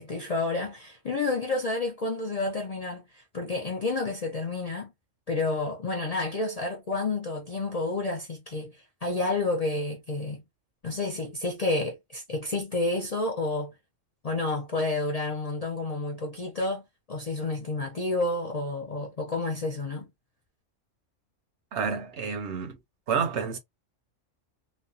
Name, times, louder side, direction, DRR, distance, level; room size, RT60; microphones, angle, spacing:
voice 1, 0.0-4.9 5.3-10.4 10.8-13.7 14.2-20.1, left 2 dB, 50° left, 0.5 m, -30 dB
voice 2, 21.7-22.8 23.1-23.6, right 6 dB, 65° right, 1.0 m, -29 dB
3.1 x 2.0 x 2.4 m
omnidirectional pair, 1.3 m